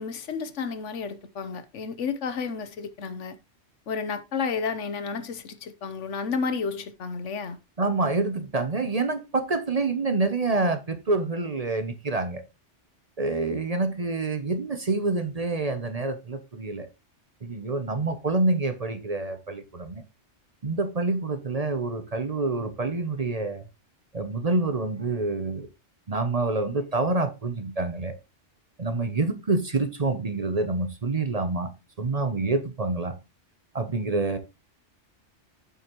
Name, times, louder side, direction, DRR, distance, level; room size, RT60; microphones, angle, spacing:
voice 1, 0.0-3.4 3.9-7.6, left 5 dB, 80° left, 1.2 m, -31 dB
voice 2, 7.8-12.4 13.2-16.9 17.4-20.0 20.6-23.6 24.1-25.7 26.1-28.2 28.8-31.7 32.0-33.1 33.7-34.4, right 3 dB, 35° right, 0.8 m, -27 dB
8.2 x 7.5 x 3.0 m
omnidirectional pair, 1.2 m